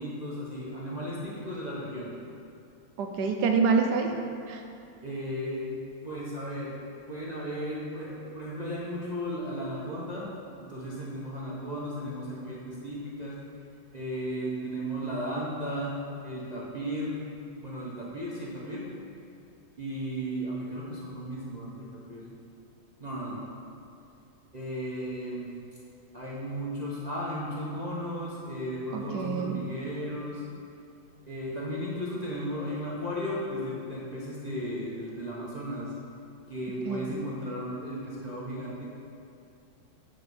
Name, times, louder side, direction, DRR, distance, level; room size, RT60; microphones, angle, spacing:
voice 1, 0.0-2.1 5.0-5.7 6.0-6.8 7.1-10.3 10.6-13.4 13.9-17.3 17.6-18.9 19.8-22.3 23.0-23.4 24.5-25.5 26.1-30.4 31.3-35.9 36.5-38.8, equal, 45° right, -7 dB, 0.5 m, -35 dB
voice 2, 3.0-4.1 4.5-4.6 28.9-29.6 36.8-37.1, right 5 dB, 70° right, 4 dB, 1.1 m, -26 dB
8.3 x 3.8 x 5.2 m, 2.5 s
omnidirectional pair, 2.1 m